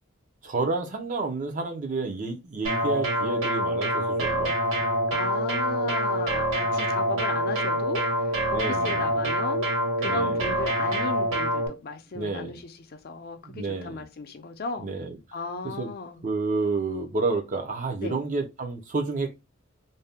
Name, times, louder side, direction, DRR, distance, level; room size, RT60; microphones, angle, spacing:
voice 1, 0.4-4.9 8.5-9.0 10.0-10.5 12.1-12.6 13.4-14.0 14.8-15.1 15.6-15.9 16.2-19.3, right 3 dB, 40° right, 0.6 m, -30 dB
sound 1, 2.6-11.7, equal, 85° right, 1.1 m, -26 dB
voice 2, 5.1-8.1 8.3-9.7 10.0-14.9 15.3-16.2 18.0-18.2, left 4 dB, 45° left, 0.5 m, -35 dB
2.6 x 2.2 x 3.3 m
head